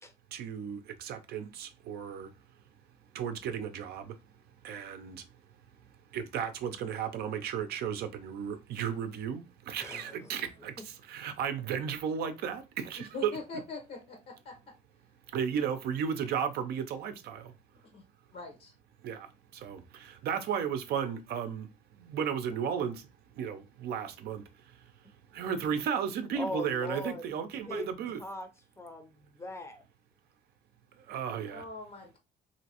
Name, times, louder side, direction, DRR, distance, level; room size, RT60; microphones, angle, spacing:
voice 1, 0.3-2.3 3.1-4.1 4.6-5.2 6.1-13.4 15.3-17.5 19.0-19.3 19.6-21.7 22.1-23.0 23.4-24.4 25.3-28.2 31.1-31.6, right 8 dB, 70° right, 0.6 m, -34 dB
voice 2, 9.8-10.2 26.3-27.2 27.7-27.9 28.2-28.5 28.8-29.8, left 2 dB, 15° left, 0.6 m, -39 dB
voice 3, 13.1-14.5 17.9-18.0 18.3-18.7 31.5-32.2, left 3 dB, 60° left, 0.9 m, -42 dB
3.0 x 2.8 x 2.9 m
cardioid pair, 110°, 17 cm